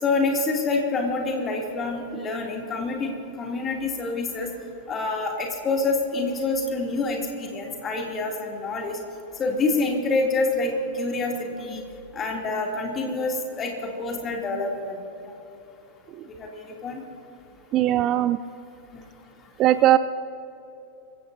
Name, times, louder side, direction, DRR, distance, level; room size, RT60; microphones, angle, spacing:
voice 1, 0.0-4.5 4.9-9.0 9.4-11.8 12.1-15.0 16.4-17.0 18.9-19.0, left 3 dB, 25° left, 0 dB, 2.9 m, -27 dB
voice 2, 17.7-18.4 19.6-20.0, right 13 dB, 35° right, 13 dB, 0.4 m, -19 dB
26.5 x 15.5 x 2.8 m, 3.0 s
figure-of-eight pair, 90°, 0 cm